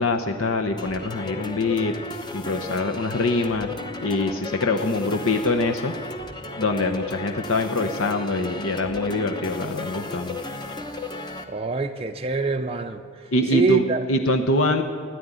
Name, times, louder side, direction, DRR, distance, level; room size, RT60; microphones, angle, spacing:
voice 1, 0.0-1.9 2.3-3.7 4.0-5.9 6.6-10.4 13.3-14.8, left 2 dB, 70° left, 5 dB, 0.8 m, -24 dB
sound 1, 0.8-11.4, left 2 dB, 20° left, 0.9 m, -34 dB
voice 2, 11.5-13.0 13.5-14.1, right 2 dB, 25° right, 4 dB, 0.5 m, -24 dB
13.5 x 10.5 x 9.3 m, 2.3 s
head